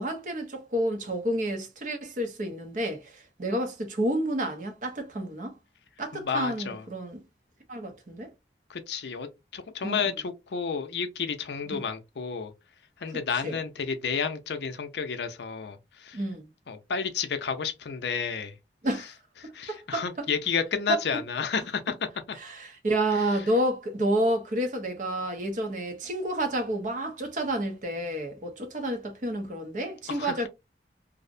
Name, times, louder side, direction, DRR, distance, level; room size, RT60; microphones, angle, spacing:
voice 1, 0.0-5.5 6.0-7.2 7.7-8.3 9.8-10.1 11.7-11.8 13.4-13.6 16.1-16.5 18.8-19.1 19.4-20.3 20.9-21.0 22.3-30.5, right 1 dB, 45° right, 0.6 m, -30 dB
voice 2, 6.1-6.8 8.7-12.5 13.0-16.2 16.7-18.5 19.4-21.9 30.1-30.5, left 6 dB, 70° left, 0.5 m, -31 dB
2.6 x 2.0 x 2.5 m
head